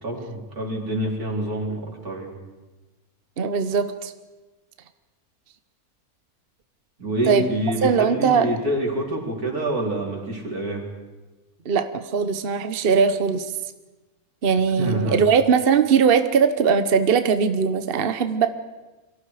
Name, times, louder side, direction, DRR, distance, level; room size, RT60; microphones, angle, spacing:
voice 1, 0.0-2.3 7.0-10.8 14.8-15.2, right 1 dB, 85° right, -1 dB, 4.8 m, -27 dB
voice 2, 3.4-4.1 7.3-7.5 7.8-8.5 11.6-13.6 14.4-18.5, right 6 dB, 45° right, 9 dB, 1.1 m, -20 dB
29.0 x 23.5 x 4.9 m, 1.2 s
omnidirectional pair, 1.6 m